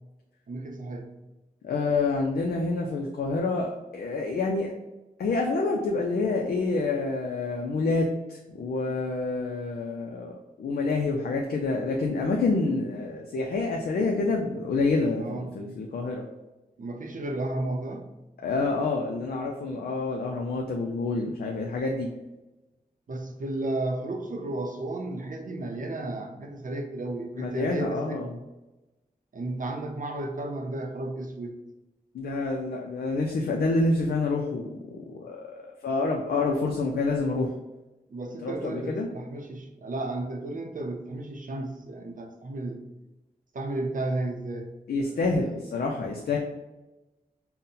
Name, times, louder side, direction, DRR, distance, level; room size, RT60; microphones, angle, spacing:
voice 1, 0.5-1.1 15.2-15.6 16.8-18.0 23.1-28.3 29.3-31.6 38.1-42.8 43.5-44.7 45.1-45.5, right 2 dB, 60° right, 4 dB, 0.6 m, -33 dB
voice 2, 1.6-4.7 5.2-16.3 18.4-22.1 27.4-28.4 32.1-37.5 38.4-39.1 44.9-46.4, left 3 dB, 85° left, 0 dB, 0.4 m, -28 dB
4.0 x 2.1 x 3.8 m, 1.0 s
cardioid pair, 50°, 16 cm